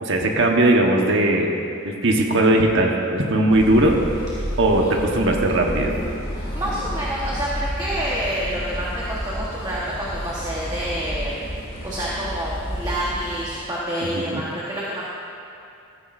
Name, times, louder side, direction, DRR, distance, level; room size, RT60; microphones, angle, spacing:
voice 1, 0.0-1.5 1.8-4.0 4.6-5.9 14.1-14.4, right 1 dB, 60° right, 1 dB, 1.3 m, -19 dB
sound 1, 3.5-13.5, equal, 45° left, 3.0 m, -31 dB
voice 2, 4.4-5.2 6.3-11.4 11.8-15.1, equal, 20° right, -6 dB, 1.4 m, -28 dB
15.0 x 14.5 x 2.7 m, 2.5 s
head